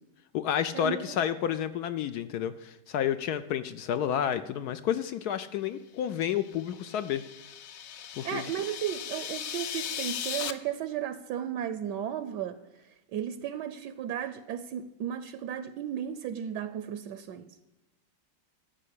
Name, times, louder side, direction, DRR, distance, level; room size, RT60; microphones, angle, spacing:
voice 1, 0.3-7.2 8.2-8.4, left 9 dB, 70° left, 1.0 m, -30 dB
sound 1, 6.3-10.5, left 9 dB, 90° left, 0.6 m, -38 dB
voice 2, 8.2-12.6 13.1-17.5, right 10 dB, 75° right, 1.2 m, -34 dB
13.0 x 5.1 x 8.2 m
omnidirectional pair, 1.9 m